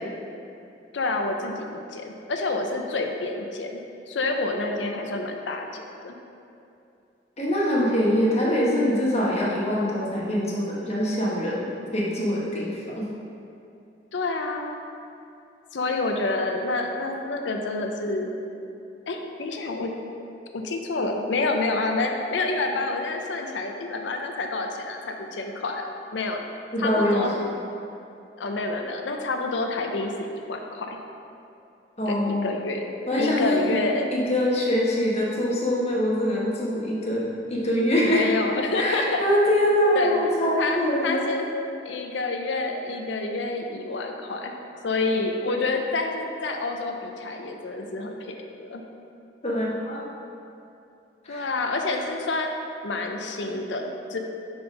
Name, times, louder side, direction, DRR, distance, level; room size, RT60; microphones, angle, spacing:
voice 1, 0.9-3.8 4.1-6.1 14.1-14.7 15.7-18.3 19.1-19.9 20.5-26.4 26.8-27.4 28.4-31.0 32.1-32.9 33.2-34.1 38.0-39.2 39.9-40.1 40.6-41.4 41.8-44.5 44.8-48.8 51.3-52.5 52.8-54.2, left 3 dB, 85° left, 3 dB, 0.6 m, -28 dB
voice 2, 7.4-13.0 26.7-27.3 32.0-32.6 33.1-33.8 34.1-38.3 38.8-41.3 49.4-50.0 51.2-51.5, equal, 40° left, -5 dB, 1.3 m, -24 dB
5.6 x 4.4 x 5.4 m, 2.7 s
head